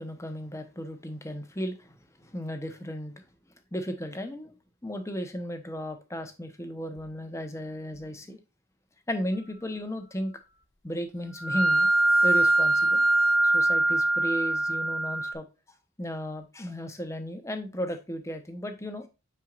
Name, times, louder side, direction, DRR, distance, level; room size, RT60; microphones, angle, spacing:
voice 1, 0.0-3.1 3.7-4.5 4.8-8.4 9.1-10.3 10.8-11.9 12.2-13.0 13.4-15.4 16.0-19.1, equal, 15° left, 0.9 m, -35 dB
sound 1, 11.4-15.3, right 2 dB, 60° left, 1.4 m, -23 dB
8.9 x 4.6 x 2.5 m
head